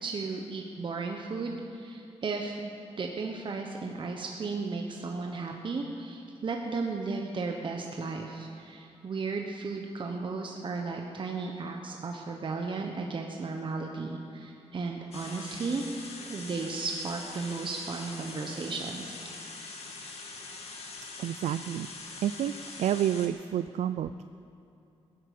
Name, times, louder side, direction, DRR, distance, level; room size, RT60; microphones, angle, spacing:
voice 1, 0.0-15.8 16.3-19.2, right 4 dB, 45° right, 1 dB, 1.1 m, -35 dB
sound 1, 15.1-23.3, left 3 dB, 65° left, 2.0 m, -43 dB
voice 2, 21.2-21.9 22.2-22.5 22.8-24.2, right 11 dB, 85° right, 12 dB, 0.4 m, -29 dB
16.5 x 10.5 x 6.9 m, 2.6 s
cardioid pair, 105°, 11 cm